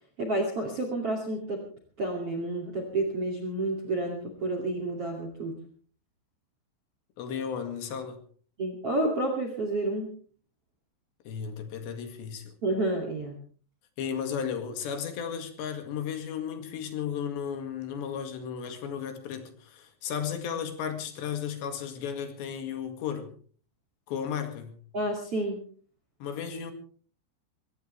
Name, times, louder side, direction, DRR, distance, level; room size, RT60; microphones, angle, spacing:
voice 1, 0.2-1.6 2.0-5.6 8.6-10.1 12.6-13.4 24.9-25.6, right 2 dB, 35° right, 3 dB, 2.8 m, -30 dB
voice 2, 7.2-8.2 11.3-12.5 14.0-23.3 24.1-24.8 26.2-26.7, left 7 dB, 70° left, 6 dB, 4.1 m, -34 dB
23.5 x 18.0 x 3.4 m, 0.44 s
omnidirectional pair, 5.5 m